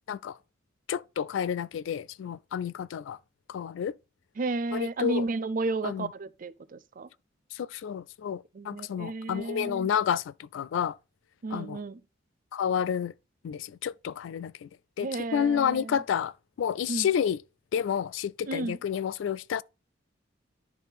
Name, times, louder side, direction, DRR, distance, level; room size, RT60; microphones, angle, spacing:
voice 1, 0.9-3.2 3.5-3.9 4.7-5.3 5.8-6.1 7.5-11.0 11.5-11.8 12.5-13.1 13.4-14.7 15.0-16.3 16.6-17.4 17.7-19.6, left 8 dB, 80° left, 0.3 m, -30 dB
voice 2, 4.4-7.1 8.5-9.9 11.4-12.0 15.0-16.0 16.9-17.1 18.5-18.8, right 3 dB, 45° right, 0.4 m, -33 dB
10.5 x 3.6 x 4.1 m
head